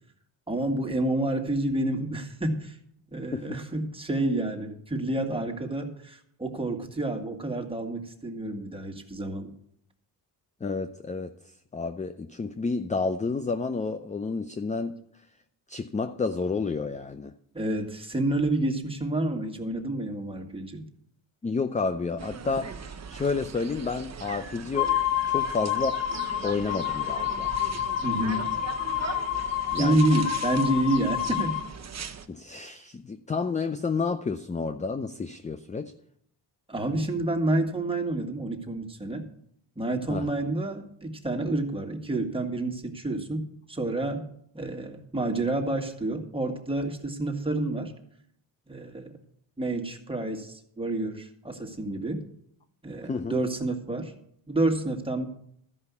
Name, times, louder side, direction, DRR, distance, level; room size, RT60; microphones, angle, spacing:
voice 1, 0.5-2.8 3.1-9.5 17.5-20.9 28.0-28.5 29.8-31.6 36.7-39.3 39.8-44.3 44.5-47.9 48.7-49.1 49.6-52.2 52.8-54.1 54.5-55.3, right 2 dB, 10° right, 1.8 m, -29 dB
voice 2, 10.6-11.3 11.7-15.0 15.7-17.3 21.4-25.0 25.3-26.0 26.4-27.5 29.7-30.1 32.3-35.9 40.1-40.3 53.1-53.4, left 4 dB, 15° left, 0.5 m, -30 dB
sound 1, 22.2-32.3, right 6 dB, 35° right, 1.1 m, -40 dB
sound 2, 24.7-31.6, left 11 dB, 85° left, 1.2 m, -29 dB
13.0 x 5.5 x 8.3 m
cardioid pair, 90°, 44 cm